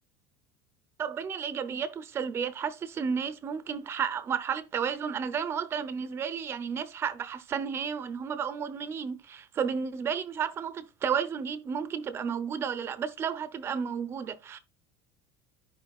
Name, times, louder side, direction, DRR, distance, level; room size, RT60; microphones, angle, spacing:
voice 1, 1.0-14.6, right 7 dB, 25° right, 0.8 m, -32 dB
13.5 x 5.1 x 2.4 m
cardioid pair, 160°, 9 cm